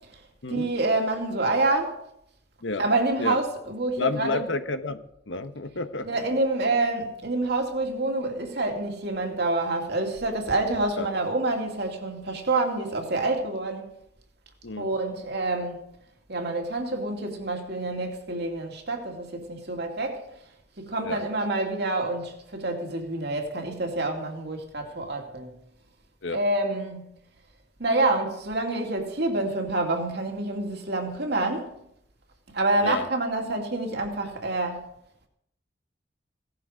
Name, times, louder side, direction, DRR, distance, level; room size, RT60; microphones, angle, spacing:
voice 1, 0.5-2.0 2.8-4.5 6.0-13.9 14.8-15.8 16.3-20.3 20.8-25.5 26.3-27.0 27.8-31.7 32.5-34.9, right 2 dB, 65° right, 2.6 m, -27 dB
voice 2, 4.0-6.1 11.0-11.1 14.6-14.9 21.0-21.2 26.2-26.4 32.8-33.1, left 3 dB, 90° left, 1.1 m, -30 dB
17.0 x 12.0 x 5.1 m
head